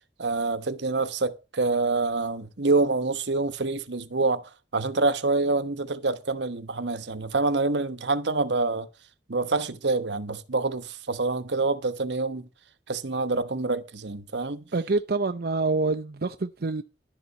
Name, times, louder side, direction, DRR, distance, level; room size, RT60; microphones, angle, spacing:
voice 1, 0.2-8.9 9.3-12.5 12.9-14.6, right 3 dB, 80° right, 1.1 m, -26 dB
voice 2, 14.7-16.8, right 3 dB, 60° right, 0.6 m, -26 dB
11.5 x 6.9 x 6.2 m
head